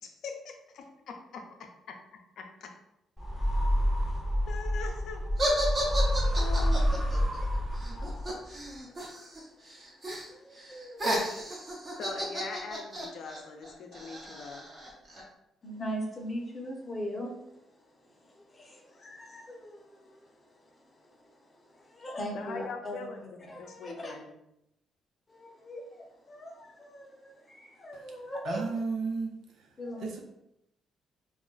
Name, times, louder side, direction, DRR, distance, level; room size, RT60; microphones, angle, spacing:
voice 1, 0.0-1.4 2.4-2.7 4.5-5.2 6.4-7.1 11.9-14.6 22.3-23.3 23.6-24.3, left 5 dB, 70° left, 3 dB, 0.5 m, -41 dB
sound 1, 3.2-8.5, equal, 5° right, 0.8 m, -28 dB
sound 2, 5.4-9.4 9.6-10.3 10.6-15.2, right 1 dB, 35° right, 0.9 m, -34 dB
voice 2, 7.4-12.0 15.6-24.1 25.3-28.6 29.8-30.2, equal, 30° left, 0 dB, 0.8 m, -42 dB
voice 3, 28.4-29.7 30.0-30.2, right 4 dB, 75° right, 3 dB, 0.5 m, -33 dB
2.3 x 2.1 x 3.8 m, 0.83 s
cardioid pair, 90°, 0 cm